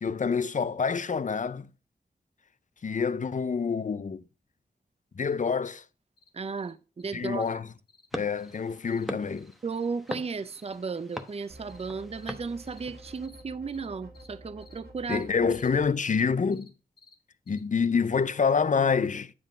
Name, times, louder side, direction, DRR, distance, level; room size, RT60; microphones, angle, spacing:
voice 1, 0.0-1.7 2.8-4.2 5.2-5.8 7.1-7.7 8.1-9.5 15.1-16.7 17.5-19.3, left 5 dB, 50° left, 0.5 m, -27 dB
sound 1, 5.3-5.4 5.7-5.8 6.2-6.3 6.6-6.7 7.0-7.1 7.4-7.5 7.9-8.1 8.4-8.6 8.9-9.0 9.4-10.2 10.6-10.7 11.1-11.4 11.7-11.9 12.2-12.4 12.7-12.8 13.2-13.4 13.7-13.9 14.1-14.3 14.6-14.8 15.1-15.2 15.5-15.7 16.0-16.2 16.5-16.7 17.0-17.1 17.5-17.6, left 4 dB, 80° left, 1.9 m, -57 dB
voice 2, 6.3-7.7 9.6-15.5, right 5 dB, 40° right, 0.4 m, -35 dB
sound 2, 8.1-13.3, equal, ahead, 1.0 m, -42 dB
sound 3, 11.5-15.9, right 1 dB, 85° right, 2.0 m, -49 dB
9.5 x 3.6 x 5.2 m
wide cardioid pair, 75°, 16 cm